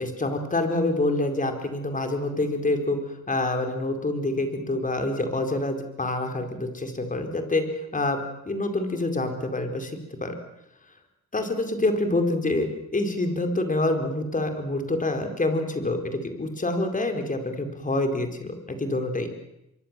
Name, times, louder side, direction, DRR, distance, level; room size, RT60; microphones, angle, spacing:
voice 1, 0.0-3.0 3.3-7.6 7.9-10.3 11.3-12.7 12.9-19.3, left 2 dB, 25° left, 6 dB, 4.4 m, -26 dB
26.0 x 23.0 x 7.6 m, 0.85 s
cardioid pair, 90°, 30 cm